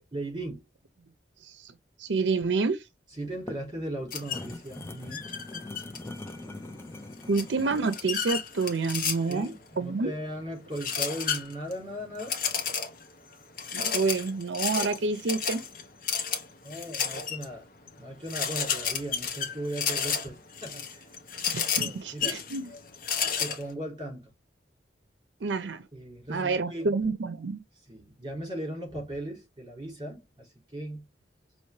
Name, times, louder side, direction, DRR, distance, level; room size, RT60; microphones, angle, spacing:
voice 1, 0.1-0.6 3.1-5.2 9.2-12.4 16.6-17.7 18.0-21.1 21.8-22.4 23.2-24.3 25.9-27.0 27.9-31.1, right 1 dB, 25° right, 3.4 m, -38 dB
voice 2, 1.4-1.7 2.0-2.9 7.3-10.1 13.7-15.6 21.5-22.7 25.4-25.8 26.3-27.6, right 4 dB, 80° right, 0.6 m, -28 dB
sound 1, 3.2-8.0, left 2 dB, 15° left, 0.6 m, -42 dB
sound 2, 4.1-4.5 5.1-6.3 7.3-9.5 10.8-11.7 12.2-13.1 13.6-17.5 17.9-18.0 18.3-23.6, left 7 dB, 50° left, 1.0 m, -31 dB
5.5 x 3.0 x 3.2 m
head